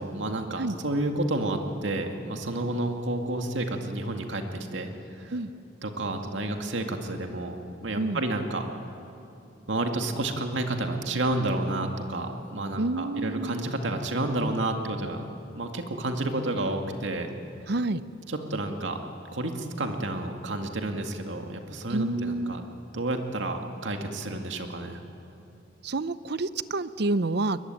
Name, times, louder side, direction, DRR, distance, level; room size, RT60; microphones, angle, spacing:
voice 1, 0.0-5.3 5.8-7.6 7.8-8.7 9.7-15.2 15.6-17.3 18.3-19.0 19.3-22.6 22.9-25.0, right 2 dB, 80° right, 4 dB, 2.1 m, -30 dB
voice 2, 12.8-13.7 17.7-18.0 21.9-22.5 25.8-27.6, right 2 dB, 60° right, 15 dB, 0.7 m, -28 dB
21.5 x 21.5 x 9.5 m, 2.7 s
head